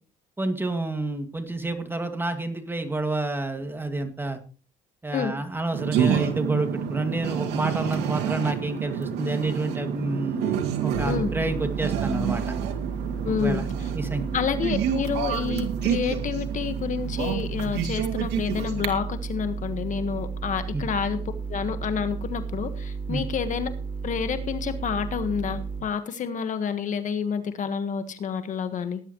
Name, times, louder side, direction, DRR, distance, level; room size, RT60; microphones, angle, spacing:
voice 1, 0.4-4.4 5.0-12.5 13.3-13.7 14.0-14.2 20.7-20.8 23.1-23.2, right 2 dB, 15° right, 6 dB, 2.3 m, -29 dB
sound 1, 5.7-18.9, right 9 dB, 85° right, 2.5 m, -29 dB
sound 2, 10.9-25.8, right 5 dB, 10° left, 5.4 m, -33 dB
voice 2, 13.2-13.6 14.3-21.2 21.5-23.7 24.0-29.0, left 7 dB, 50° left, 9 dB, 1.6 m, -29 dB
18.5 x 11.0 x 3.2 m, 0.37 s
cardioid pair, 110°, 17 cm